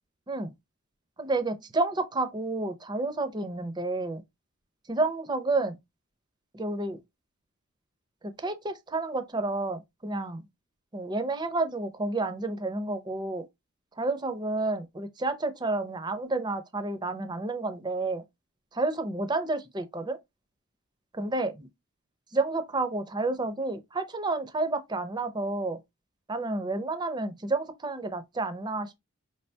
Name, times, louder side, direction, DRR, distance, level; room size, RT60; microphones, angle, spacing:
voice 1, 1.2-4.2 4.9-5.8 6.5-7.0 8.2-10.4 10.9-13.5 14.0-18.2 18.8-20.2 21.2-21.7 22.3-25.8 26.3-29.0, right 2 dB, 20° right, 0.6 m, -30 dB
4.8 x 3.3 x 2.7 m
head